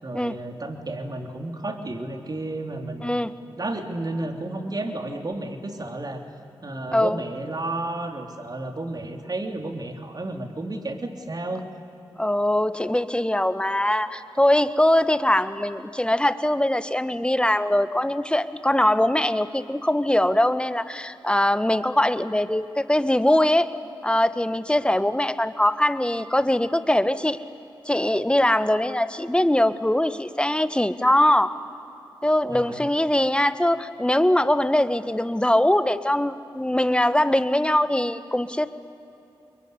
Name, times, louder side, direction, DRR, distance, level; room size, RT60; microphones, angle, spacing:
voice 1, 0.0-3.2 3.6-6.2 6.6-11.8 32.5-32.9, right 2 dB, 45° right, 5 dB, 3.5 m, -32 dB
voice 2, 12.2-23.7 24.0-27.4 27.9-31.5 32.2-38.7, left 1 dB, 10° left, 13 dB, 1.4 m, -22 dB
26.0 x 22.5 x 9.9 m, 2.9 s
cardioid pair, 40°, 9 cm